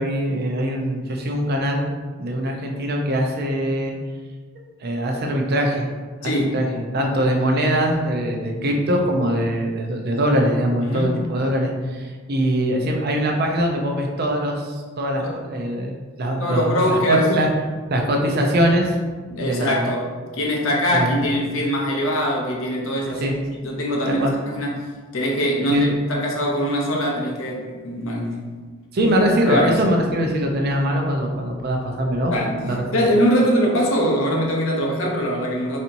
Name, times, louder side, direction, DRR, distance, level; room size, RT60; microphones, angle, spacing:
voice 1, 0.0-1.9 2.2-4.0 4.8-5.9 6.2-15.9 16.2-17.5 17.9-19.0 19.4-19.9 20.9-21.2 23.1-23.4 24.1-24.3 25.7-25.9 28.9-32.3 32.6-32.8, equal, 50° right, 2 dB, 0.5 m, -22 dB
voice 2, 10.8-11.2 15.2-15.4 16.4-17.3 19.3-23.3 23.6-28.4 29.0-29.1 29.5-29.7 32.3-32.5 32.9-35.8, equal, 80° left, -1 dB, 0.7 m, -22 dB
4.1 x 2.9 x 2.6 m, 1.4 s
head